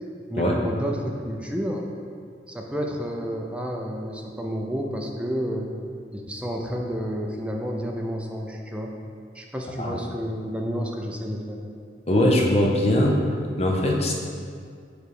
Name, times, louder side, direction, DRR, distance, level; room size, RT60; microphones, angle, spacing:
voice 1, 0.3-1.9 2.5-5.7 6.1-8.9 9.3-11.6, equal, 5° right, 0 dB, 0.5 m, -30 dB
voice 2, 12.1-13.2 13.6-14.1, left 1 dB, 35° left, 0 dB, 0.7 m, -21 dB
7.2 x 3.3 x 4.7 m, 2.2 s
head